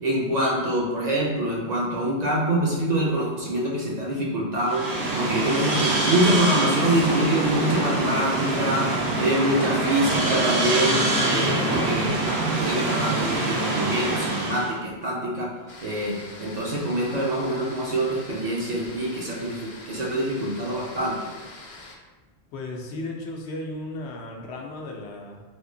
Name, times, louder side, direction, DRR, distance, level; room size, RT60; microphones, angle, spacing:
voice 1, 0.0-8.9 9.2-12.2 12.6-15.5 15.8-21.2, right 1 dB, 50° right, -4 dB, 0.5 m, -25 dB
sound 1, 4.6-14.8, right 2 dB, 80° right, 0.9 m, -25 dB
sound 2, 15.7-21.9, left 2 dB, 55° left, 0.4 m, -44 dB
voice 2, 22.5-25.4, left 2 dB, 80° left, 1 dB, 0.8 m, -35 dB
3.5 x 2.7 x 2.6 m, 1.3 s
omnidirectional pair, 1.1 m